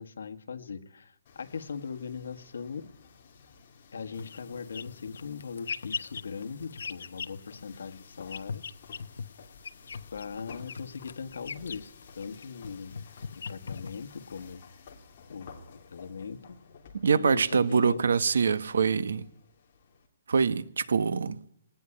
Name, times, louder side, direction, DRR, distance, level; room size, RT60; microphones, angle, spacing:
voice 1, 0.0-2.9 3.9-8.6 10.1-13.0 13.3-14.6 15.3-16.6 17.1-18.0, left 5 dB, 90° left, 1.6 m, -40 dB
sound 1, 1.2-20.1, left 5 dB, 30° left, 3.3 m, -54 dB
sound 2, 4.1-14.5, left 5 dB, 75° left, 1.0 m, -42 dB
voice 2, 16.9-19.3 20.3-21.4, right 5 dB, 90° right, 1.2 m, -25 dB
19.5 x 19.0 x 8.6 m
hypercardioid pair, 180°, 0 cm